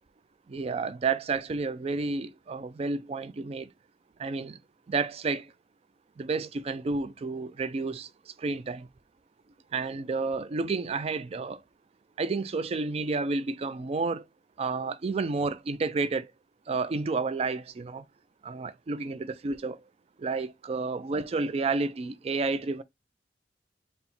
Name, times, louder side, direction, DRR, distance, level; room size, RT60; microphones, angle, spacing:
voice 1, 0.5-3.7 4.2-4.6 4.9-5.5 6.2-8.9 9.7-11.6 12.2-14.3 14.6-16.3 16.7-18.0 18.4-19.8 20.2-22.8, right 4 dB, 35° right, 0.3 m, -30 dB
4.3 x 2.1 x 3.9 m
head